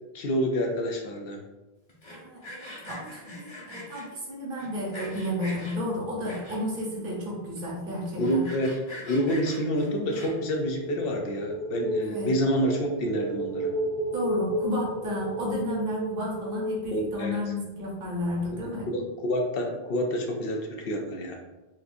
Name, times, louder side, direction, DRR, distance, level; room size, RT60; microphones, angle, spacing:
voice 1, 0.1-1.4 8.2-8.7 9.0-13.7 14.9-15.0 16.9-17.4 18.9-21.4, equal, 70° left, 2 dB, 0.8 m, -28 dB
Sawing, 1.9-4.1 4.6-5.8 6.2-6.8 7.3-7.4 7.6-7.7 8.1-10.6, left 1 dB, 30° left, 0.8 m, -42 dB
voice 2, 2.1-8.4 12.0-12.3 14.1-18.8, left 1 dB, 60° right, -4 dB, 1.1 m, -32 dB
sound 1, 8.9-17.8, equal, 35° right, 0.8 m, -33 dB
4.1 x 2.5 x 2.5 m, 1.1 s
omnidirectional pair, 1.1 m